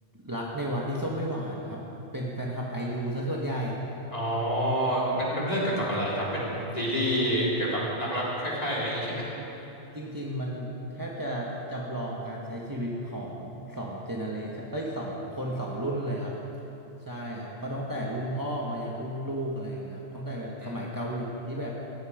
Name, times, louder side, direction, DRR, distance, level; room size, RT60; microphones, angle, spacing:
voice 1, 0.2-1.8 2.1-3.8 9.9-16.4 17.0-21.7, equal, 15° right, -3 dB, 1.6 m, -33 dB
voice 2, 4.1-9.3 20.6-20.8, equal, 35° left, -6 dB, 4.0 m, -28 dB
18.5 x 15.0 x 5.2 m, 3.0 s
omnidirectional pair, 1.2 m